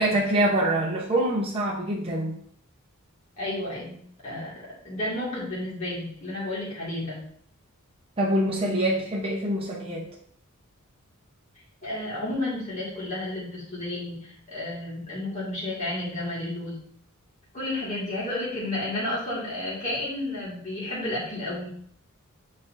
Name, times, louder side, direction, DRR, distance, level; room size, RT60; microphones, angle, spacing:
voice 1, 0.0-2.4 8.2-10.1, right 1 dB, 25° right, -3 dB, 0.9 m, -25 dB
voice 2, 3.4-4.0 4.2-4.5 4.8-7.2 11.8-16.8 17.5-21.7, left 1 dB, 35° left, -8 dB, 2.2 m, -31 dB
8.4 x 4.3 x 2.6 m, 0.63 s
head